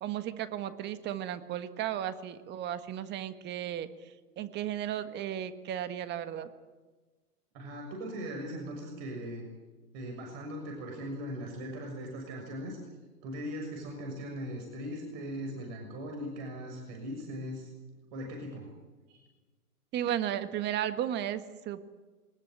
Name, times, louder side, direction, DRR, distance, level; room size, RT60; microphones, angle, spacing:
voice 1, 0.0-3.9 4.4-6.5 19.9-21.9, right 11 dB, 20° right, 11 dB, 1.6 m, -34 dB
voice 2, 7.5-9.4 9.9-12.8 13.2-17.7 18.1-18.7 19.1-19.2, equal, 40° right, 1 dB, 6.7 m, -39 dB
23.0 x 20.0 x 9.1 m, 1.3 s
hypercardioid pair, 130°, 46 cm